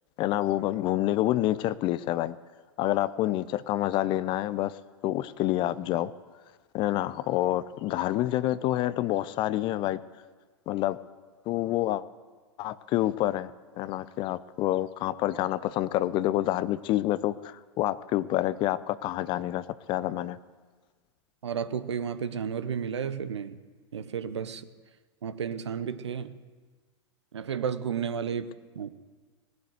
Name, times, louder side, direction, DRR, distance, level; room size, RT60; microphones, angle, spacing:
voice 1, 0.2-2.4 2.8-4.7 5.0-6.1 6.7-10.0 10.7-11.0 11.5-12.0 12.6-13.5 13.8-20.4, left 14 dB, 35° left, 17 dB, 0.5 m, -27 dB
voice 2, 21.4-23.6 23.9-24.7 25.2-26.4 27.3-28.9, right 7 dB, 70° right, 13 dB, 0.9 m, -32 dB
18.5 x 7.9 x 8.0 m, 1.4 s
figure-of-eight pair, 100°, 15 cm